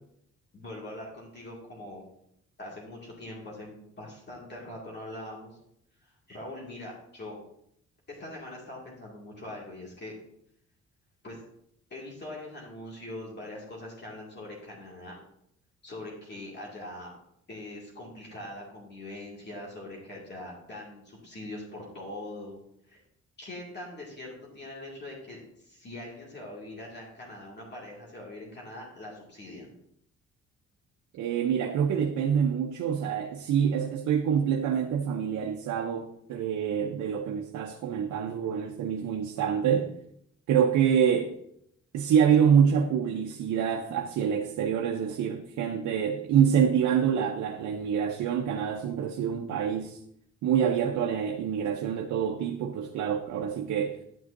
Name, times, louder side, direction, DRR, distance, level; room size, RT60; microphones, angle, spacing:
voice 1, 0.5-2.0 2.6-5.6 6.0-7.4 8.1-10.1 11.2-11.4 11.9-15.2 15.8-17.1 17.5-22.6 22.9-23.0 23.4-29.7, left 1 dB, 35° left, 2.2 m, -42 dB
voice 2, 31.1-39.9 40.5-41.3 41.9-50.0 50.4-54.0, right 8 dB, 70° right, 0.7 m, -26 dB
10.5 x 6.2 x 2.6 m
cardioid pair, 90°, 30 cm